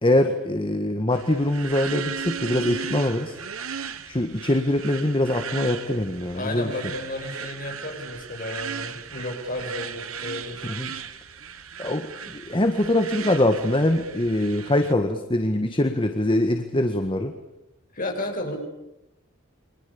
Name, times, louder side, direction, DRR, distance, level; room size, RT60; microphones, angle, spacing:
voice 1, 0.0-3.3 4.1-6.7 10.7-10.9 11.8-12.1 12.3-17.3, left 1 dB, 25° left, 6 dB, 1.7 m, -23 dB
sound 1, 1.1-14.9, right 7 dB, 85° right, 1.7 m, -36 dB
voice 2, 6.3-10.6 17.9-18.6, left 1 dB, 40° left, 2 dB, 7.4 m, -32 dB
30.0 x 25.0 x 7.1 m, 0.89 s
head